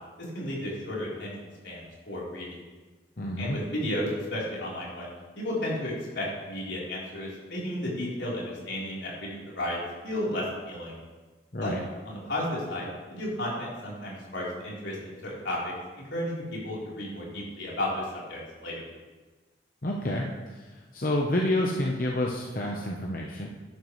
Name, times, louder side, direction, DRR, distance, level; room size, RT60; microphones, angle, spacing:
voice 1, 0.3-2.6 3.4-11.0 11.6-11.8 12.0-15.7 16.1-18.8, left 1 dB, 80° left, -6 dB, 3.9 m, -33 dB
voice 2, 3.2-3.6 11.5-11.8 19.8-20.3 20.5-20.6 20.9-23.5, left 1 dB, 50° left, -1 dB, 0.9 m, -28 dB
12.0 x 11.0 x 3.2 m, 1.3 s
head